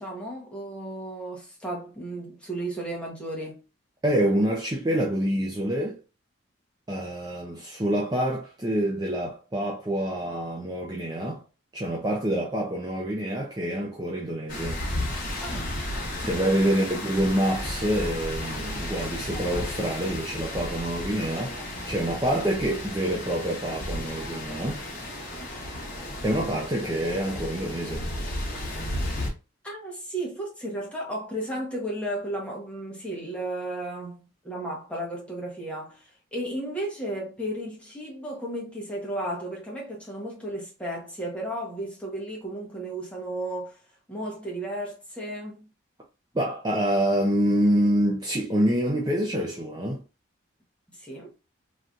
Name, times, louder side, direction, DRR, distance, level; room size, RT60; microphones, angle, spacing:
voice 1, 0.0-3.6 15.4-15.9 16.2-16.7 29.6-43.8 44.1-45.7 50.9-51.3, right 1 dB, 5° left, 1.0 m, -34 dB
voice 2, 4.0-6.0 6.9-11.4 11.7-14.8 16.2-21.6 21.8-24.8 26.2-28.1 46.3-50.0, right 1 dB, 20° right, 0.5 m, -26 dB
sound 1, 14.5-29.3, left 1 dB, 40° left, 1.0 m, -33 dB
3.2 x 2.7 x 2.4 m
head